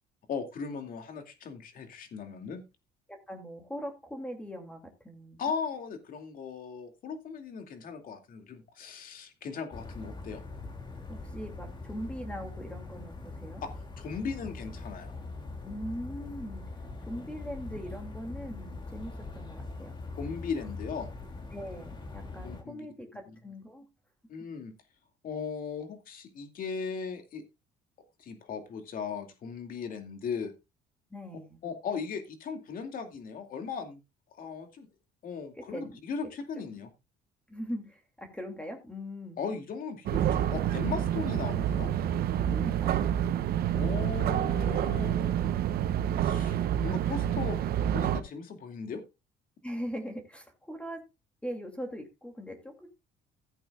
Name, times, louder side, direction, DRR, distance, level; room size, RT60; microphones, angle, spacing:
voice 1, 0.3-2.6 5.4-10.4 13.6-13.7 14.0-15.1 20.2-21.1 22.4-22.8 24.3-24.7 25.2-27.4 28.2-30.5 31.6-34.0 34.4-34.9 35.2-36.9 39.4-41.9 43.7-45.5 46.2-47.6 47.9-49.0, left 5 dB, 55° left, 6 dB, 2.5 m, -37 dB
voice 2, 3.1-5.4 11.1-13.6 15.6-16.6 17.0-19.9 21.5-23.9 31.1-31.6 35.7-36.0 37.5-39.4 42.4-43.5 49.6-51.0 51.4-52.9, equal, 5° left, 4 dB, 2.6 m, -41 dB
sound 1, 9.7-22.6, left 3 dB, 25° left, 2.6 m, -42 dB
sound 2, 40.1-48.2, right 10 dB, 65° right, 0.8 m, -28 dB
15.5 x 8.6 x 2.4 m, 0.26 s
cardioid pair, 110°, 17 cm